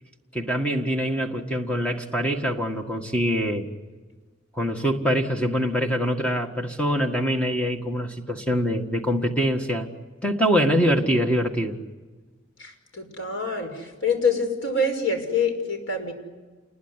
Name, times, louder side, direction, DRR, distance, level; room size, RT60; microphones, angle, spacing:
voice 1, 0.3-3.7 4.6-9.9 10.2-11.8, equal, 5° left, 3 dB, 1.8 m, -24 dB
voice 2, 12.6-16.1, left 3 dB, 75° left, 4 dB, 5.8 m, -26 dB
28.5 x 21.5 x 9.8 m, 1.3 s
head